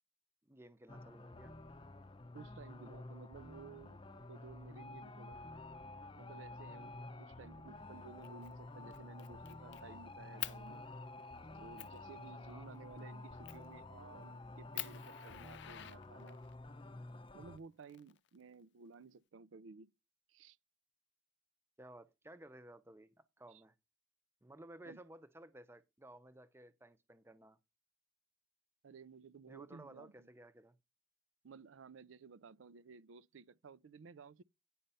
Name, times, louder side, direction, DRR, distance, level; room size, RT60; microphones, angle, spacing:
voice 1, 0.4-1.6 12.5-12.7 21.8-23.7 24.4-27.6 29.5-30.8, right 1 dB, 15° right, 0.6 m, -56 dB
sound 1, 0.9-17.6, left 2 dB, 25° left, 0.7 m, -51 dB
voice 2, 2.3-4.0 4.3-5.4 6.2-10.9 11.5-16.4 17.3-19.9 20.3-20.6 23.5-23.6 24.8-25.0 28.8-30.3 31.4-34.4, right 5 dB, 90° right, 0.5 m, -56 dB
Fire, 8.2-8.5 8.9-9.8 10.4-10.6 11.2-11.3 11.8-12.0 13.5-13.7 14.2-14.3 14.7-16.5 17.6-18.5, left 15 dB, 65° left, 0.5 m, -46 dB
10.0 x 5.3 x 5.5 m
head